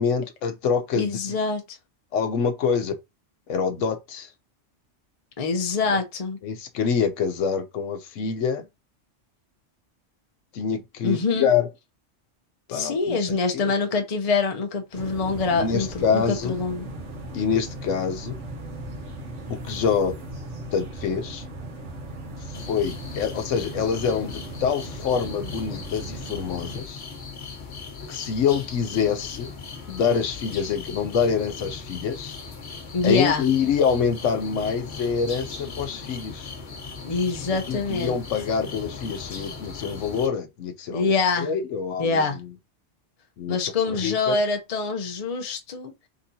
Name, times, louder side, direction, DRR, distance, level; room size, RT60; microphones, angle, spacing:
voice 1, 0.0-1.2 2.1-2.9 3.5-4.3 6.4-8.7 10.5-11.7 12.7-13.7 15.5-16.6 17.3-18.4 19.5-20.1 20.7-21.4 22.7-27.0 28.1-29.5 29.9-32.4 33.0-36.5 37.7-42.2 43.4-43.6 43.9-44.4, left 6 dB, 80° left, 1.0 m, -26 dB
voice 2, 1.0-1.8 5.4-6.4 11.0-11.5 12.7-16.9 32.9-33.4 37.0-38.2 40.9-41.5 42.0-42.4 43.5-45.9, left 4 dB, 35° left, 0.7 m, -25 dB
sound 1, 14.9-26.8, right 1 dB, 70° right, 1.5 m, -37 dB
sound 2, 22.5-40.3, left 4 dB, 60° left, 1.3 m, -38 dB
4.0 x 3.6 x 2.7 m
omnidirectional pair, 1.3 m